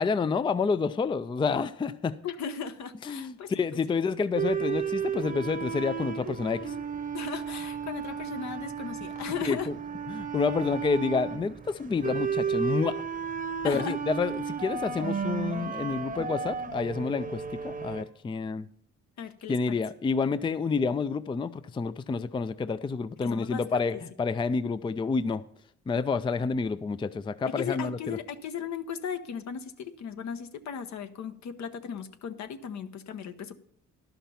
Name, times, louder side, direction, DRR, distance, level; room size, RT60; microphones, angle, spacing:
voice 1, 0.0-2.2 3.0-6.7 9.4-9.6 10.1-13.0 13.6-18.7 19.5-25.4 25.9-28.2, left 4 dB, 15° left, 14 dB, 0.4 m, -29 dB
voice 2, 2.2-3.5 7.1-9.7 13.6-14.0 19.2-19.8 23.2-24.0 27.5-33.6, left 7 dB, 65° left, 10 dB, 0.9 m, -36 dB
sound 1, 4.3-18.0, right 6 dB, 25° right, 0.9 m, -33 dB
11.5 x 5.9 x 6.9 m, 0.66 s
cardioid pair, 90°, 30 cm